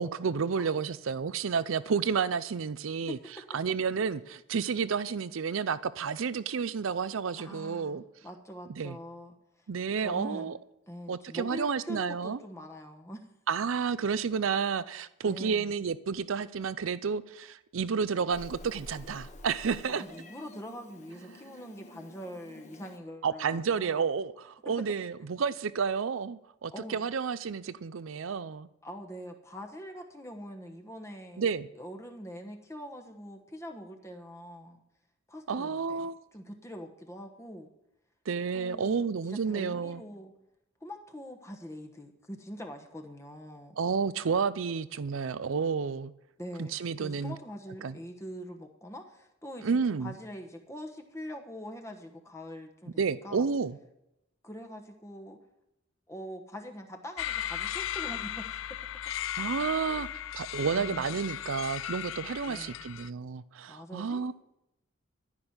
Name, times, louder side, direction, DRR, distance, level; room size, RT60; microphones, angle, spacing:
voice 1, 0.0-3.2 3.5-8.0 8.8-9.0 9.7-10.5 11.1-12.4 13.5-20.0 23.2-28.7 31.4-31.7 35.5-36.1 38.3-40.0 43.8-46.1 46.6-47.3 47.8-48.0 49.6-50.1 53.0-53.8 59.4-60.1 60.3-64.3, right 5 dB, 85° right, 0.5 m, -31 dB
voice 2, 7.4-9.7 10.0-10.6 10.9-13.3 15.3-15.7 19.9-24.1 24.7-24.8 26.7-27.0 28.8-34.8 35.3-37.7 38.5-39.0 39.3-40.3 40.8-43.8 46.4-53.5 54.4-55.4 56.1-58.8 59.9-60.1 60.7-61.1 62.4-62.8 63.7-64.3, equal, 15° left, 1.1 m, -44 dB
Meow, 18.3-23.0, left 1 dB, 35° left, 1.3 m, -49 dB
sound 1, 57.2-63.1, left 11 dB, 85° left, 0.4 m, -36 dB
13.5 x 6.2 x 9.6 m
head